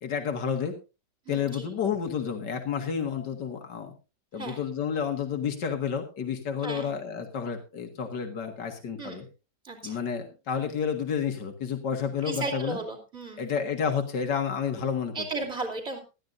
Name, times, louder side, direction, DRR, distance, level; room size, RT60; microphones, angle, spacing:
voice 1, 0.0-0.7 1.3-3.9 4.3-9.3 9.8-12.8 13.4-15.1, left 7 dB, 85° left, 4 dB, 2.3 m, -30 dB
voice 2, 1.3-1.7 4.3-4.6 6.6-6.9 9.0-9.2 9.6-10.0 12.2-13.5 15.1-16.0, right 3 dB, 40° right, 2 dB, 3.0 m, -35 dB
20.0 x 12.5 x 2.6 m, 0.29 s
omnidirectional pair, 1.8 m